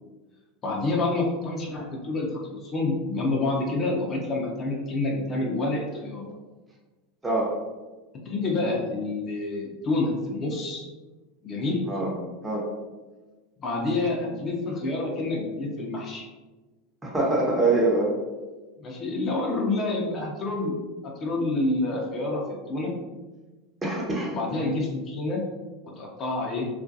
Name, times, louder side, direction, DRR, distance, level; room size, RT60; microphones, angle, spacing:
voice 1, 0.6-6.2 8.3-10.9 11.4-11.8 13.6-16.3 18.8-20.8 21.0-22.9 24.3-25.4 26.0-26.7, left 2 dB, 35° left, -1 dB, 0.5 m, -28 dB
voice 2, 17.0-18.1 23.8-24.3, right 2 dB, 15° right, -2 dB, 0.7 m, -24 dB
2.4 x 2.2 x 2.6 m, 1.2 s
hypercardioid pair, 95°, 0 cm